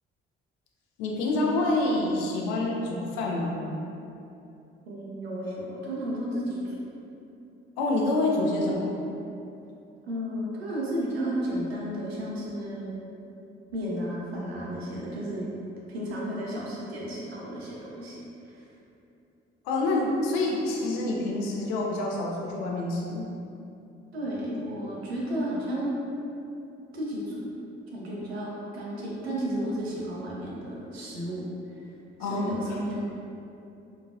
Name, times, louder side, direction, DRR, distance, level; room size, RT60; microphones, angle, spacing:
voice 1, 1.0-3.6 7.8-8.9 19.6-23.2 32.2-32.8, left 2 dB, 65° left, -2 dB, 0.6 m, -27 dB
voice 2, 4.9-6.8 10.0-13.0 13.7-15.5 15.9-18.7 24.1-26.1 26.9-27.4 27.9-31.5 32.2-33.0, equal, 85° right, -5 dB, 0.5 m, -33 dB
3.9 x 2.4 x 2.3 m, 2.8 s
figure-of-eight pair, 40°, 31 cm